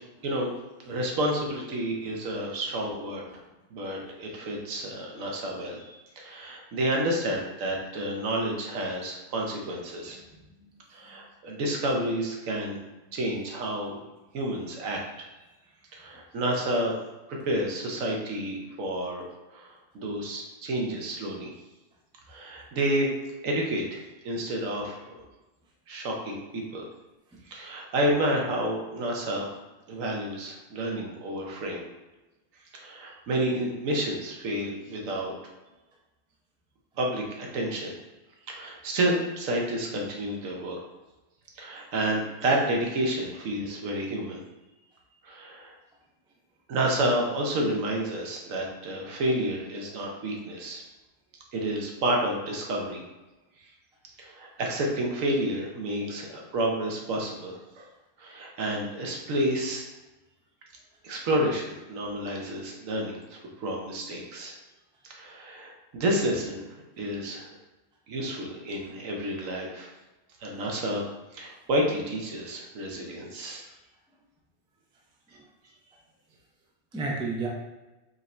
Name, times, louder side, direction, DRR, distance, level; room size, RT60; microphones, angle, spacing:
voice 1, 0.8-3.4 3.7-10.2 10.9-12.8 13.1-14.0 14.3-15.0 15.9-17.0 17.3-21.5 22.3-23.1 23.4-25.2 25.9-26.9 27.4-29.5 29.9-31.8 32.7-35.5 37.0-37.9 38.5-40.8 41.6-44.4 45.2-45.7 46.7-50.8 51.5-53.0 54.2-57.9 58.2-59.8 61.0-64.6 65.0-67.5 68.1-69.9 70.4-71.0 71.3-73.6, right 1 dB, 80° right, 0 dB, 1.2 m, -30 dB
voice 2, 10.3-10.7 11.0-11.2 13.1-13.2 24.5-24.6 27.3-27.4 38.4-38.5 43.6-43.7 75.3-75.4 76.9-77.5, right 3 dB, 10° right, -2 dB, 0.3 m, -35 dB
5.1 x 2.6 x 3.2 m, 1.1 s
omnidirectional pair, 1.4 m